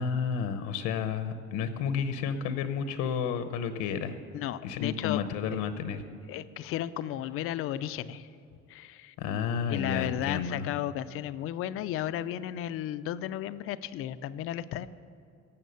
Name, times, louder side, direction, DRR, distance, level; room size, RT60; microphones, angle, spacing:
voice 1, 0.0-4.2 4.6-6.0 9.2-10.7, left 6 dB, 70° left, 10 dB, 0.8 m, -31 dB
voice 2, 4.3-5.2 5.5-5.6 6.3-8.3 8.7-9.1 9.7-14.9, left 12 dB, 50° left, 14 dB, 0.4 m, -34 dB
17.5 x 7.2 x 6.8 m, 2.5 s
cardioid pair, 175°, 30 cm